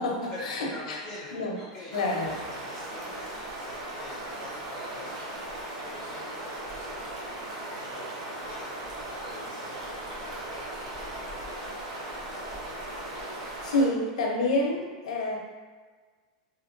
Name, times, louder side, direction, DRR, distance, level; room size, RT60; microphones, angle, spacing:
voice 1, 0.0-1.0 1.3-1.5 1.9-2.3 13.4-15.4, left 2 dB, 90° left, -1 dB, 0.7 m, -28 dB
voice 2, 0.7-1.9 2.2-12.0, left 1 dB, 20° left, -7 dB, 0.6 m, -47 dB
sound 1, 1.9-13.9, right 1 dB, 80° right, 1.0 m, -38 dB
3.1 x 2.9 x 2.5 m, 1.5 s
supercardioid pair, 160°, 4 cm